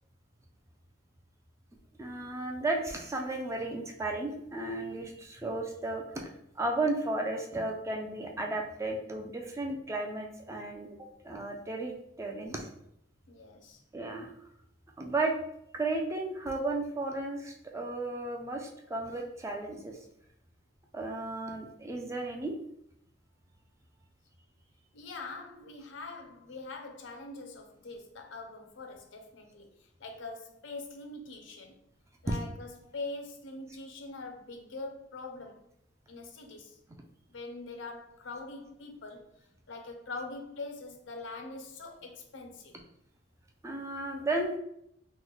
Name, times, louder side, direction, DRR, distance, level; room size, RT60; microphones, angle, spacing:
voice 1, 2.0-6.2 6.6-12.7 13.9-14.3 15.0-15.3 15.7-20.0 20.9-22.5 43.6-44.6, right 2 dB, 15° right, 0.3 m, -34 dB
voice 2, 13.3-13.8 24.9-31.8 32.2-35.6 36.1-36.8 37.3-39.3 39.7-42.8, left 3 dB, 70° left, 0.5 m, -43 dB
3.1 x 2.1 x 3.8 m
head